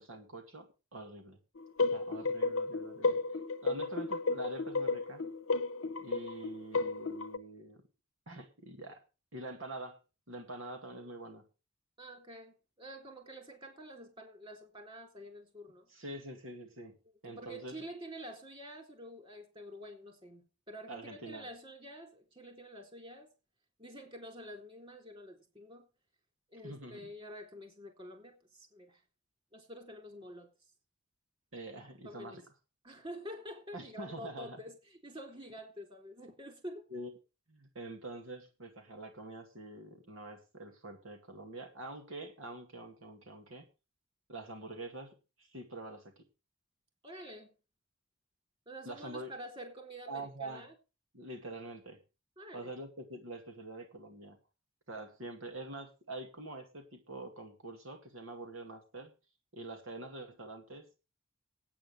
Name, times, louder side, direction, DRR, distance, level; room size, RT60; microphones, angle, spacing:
voice 1, 0.0-1.4 1.9-3.2 3.6-5.2 6.0-7.8 8.3-9.0 9.3-10.0 10.3-11.4 15.9-17.0 17.2-17.8 20.9-21.5 26.6-27.1 31.5-32.4 33.7-34.6 36.9-37.1 37.5-43.7 44.3-46.2 48.8-49.3 50.1-50.7 51.1-52.0 52.5-54.4 54.9-59.1 59.5-60.9, right 2 dB, 75° right, 2.2 m, -45 dB
sound 1, 1.6-7.4, left 3 dB, 80° left, 1.1 m, -33 dB
voice 2, 12.0-15.8 17.3-23.3 23.8-25.9 26.5-29.0 29.5-30.5 32.0-32.4 32.8-34.8 35.0-36.9 47.0-47.5 48.7-50.7 52.4-52.7, equal, 25° right, 3.9 m, -48 dB
9.1 x 8.6 x 7.1 m
head